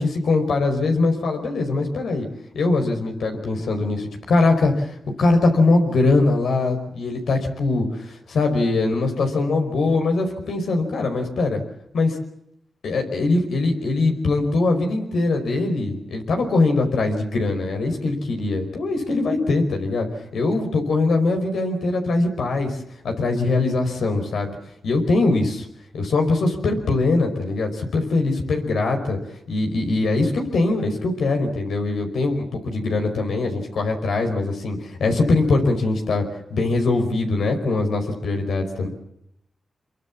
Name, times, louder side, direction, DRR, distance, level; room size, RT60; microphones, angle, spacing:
voice 1, 0.3-2.3 2.6-11.6 11.9-12.2 12.8-20.1 20.3-22.8 23.0-24.6 24.8-25.7 25.9-29.2 29.5-36.2 36.5-38.9, left 3 dB, 80° left, 3 dB, 5.1 m, -22 dB
25.0 x 23.0 x 7.4 m, 0.77 s
cardioid pair, 50°, 0 cm